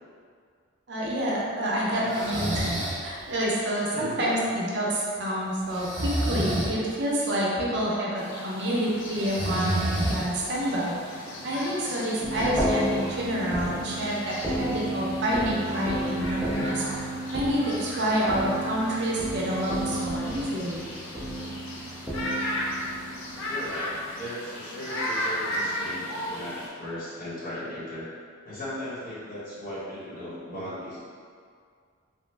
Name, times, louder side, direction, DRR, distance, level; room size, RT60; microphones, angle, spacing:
voice 1, 0.9-2.6 3.0-17.1 17.3-20.8, equal, 55° right, -5 dB, 0.5 m, -28 dB
voice 2, 2.0-2.5 3.9-4.5 23.5-28.1 28.4-31.0, left 1 dB, 45° left, -10 dB, 1.0 m, -37 dB
Breathing, 2.1-3.0 5.7-6.7 9.1-10.5, right 1 dB, 20° right, 1.0 m, -28 dB
sound 1, 8.2-26.7, left 1 dB, 75° left, 0.5 m, -36 dB
sound 2, 12.2-23.8, right 1 dB, ahead, 0.5 m, -32 dB
3.0 x 2.0 x 3.2 m, 2.1 s
head